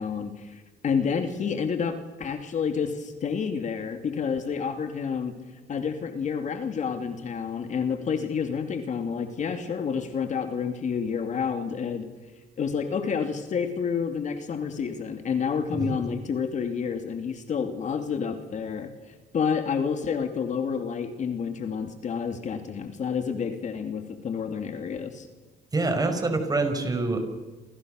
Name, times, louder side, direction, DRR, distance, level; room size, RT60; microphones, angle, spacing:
voice 1, 0.0-5.3 5.7-12.1 12.6-18.9 19.3-25.3, left 6 dB, 45° left, 6 dB, 2.9 m, -29 dB
voice 2, 25.7-27.2, right 3 dB, 20° right, 6 dB, 5.6 m, -26 dB
29.0 x 27.5 x 6.7 m, 1.2 s
cardioid pair, 110°, 17 cm